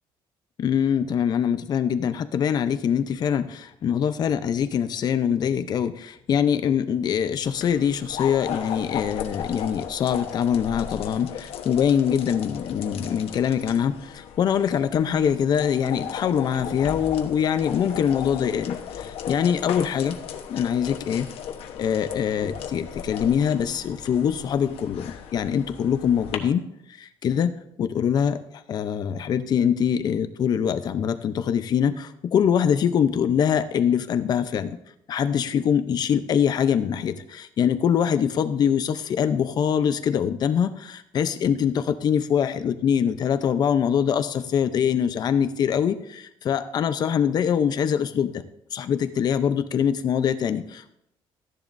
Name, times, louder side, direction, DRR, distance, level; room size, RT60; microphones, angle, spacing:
voice 1, 0.6-20.2 20.5-21.3 21.8-26.6 27.0-27.5 27.8-34.8 35.1-48.4 48.7-50.9, left 8 dB, 45° left, 11 dB, 0.7 m, -23 dB
sound 1, 7.4-26.4, left 8 dB, 75° left, 1.1 m, -36 dB
14.0 x 10.5 x 2.6 m, 0.78 s
cardioid pair, 165°, 10 cm